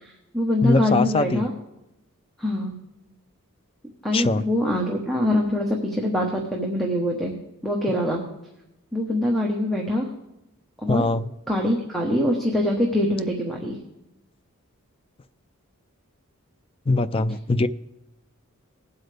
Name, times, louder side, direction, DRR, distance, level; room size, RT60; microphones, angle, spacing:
voice 1, 0.0-1.5 2.4-2.7 4.0-7.3 7.6-8.2 8.9-10.1 10.8-11.0 11.5-13.8, left 1 dB, ahead, -1 dB, 1.1 m, -24 dB
voice 2, 0.6-1.4 4.1-4.4 10.9-11.3 16.9-17.7, left 3 dB, 25° left, 13 dB, 0.3 m, -22 dB
19.0 x 8.0 x 3.4 m, 0.92 s
head